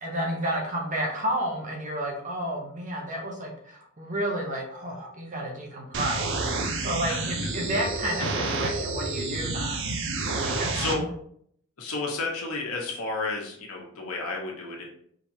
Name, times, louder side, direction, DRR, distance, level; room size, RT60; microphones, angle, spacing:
voice 1, 0.0-10.0 10.3-11.1, right 1 dB, 35° right, 0 dB, 0.9 m, -31 dB
sound 1, 5.9-10.9, right 3 dB, 60° right, 0.6 m, -29 dB
voice 2, 10.4-11.1 11.8-14.8, left 3 dB, 75° left, -1 dB, 1.2 m, -32 dB
5.0 x 3.1 x 2.8 m, 0.65 s
head